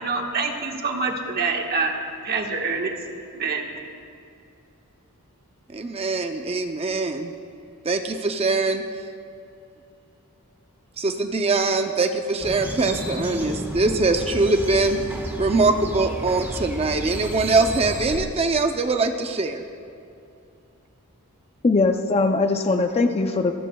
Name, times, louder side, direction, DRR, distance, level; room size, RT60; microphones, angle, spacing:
voice 1, 0.0-1.9 2.2-2.9 3.3-3.6, right 4 dB, 45° right, 1 dB, 1.4 m, -25 dB
voice 2, 5.7-7.3 7.8-8.8 11.0-15.0 15.4-19.6, right 3 dB, 25° right, 6 dB, 0.5 m, -22 dB
sound 1, 12.4-18.2, equal, 10° right, 1.4 m, -32 dB
voice 3, 21.6-23.5, left 3 dB, 30° left, 6 dB, 0.5 m, -20 dB
27.0 x 13.5 x 2.3 m, 2.5 s
head